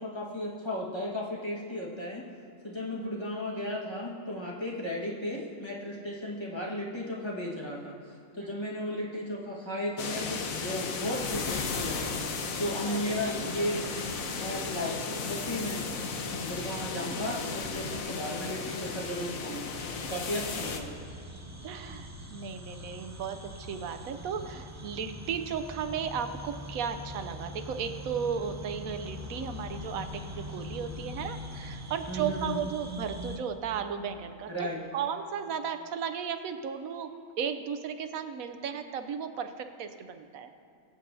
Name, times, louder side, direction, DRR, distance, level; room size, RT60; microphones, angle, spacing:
voice 1, 0.0-2.3 2.6-13.9 14.4-15.9 16.4-21.0 32.1-32.7 34.5-34.8, left 1 dB, 20° left, -5 dB, 1.4 m, -35 dB
sound 1, 10.0-20.8, left 4 dB, 80° left, 1.3 m, -35 dB
voice 2, 12.9-13.3 17.1-17.3 21.6-37.1 37.4-40.5, right 7 dB, 80° right, 9 dB, 1.1 m, -35 dB
sound 2, 19.7-33.4, left 1 dB, 25° right, 0.4 m, -42 dB
22.5 x 7.7 x 2.7 m, 2.5 s
omnidirectional pair, 1.4 m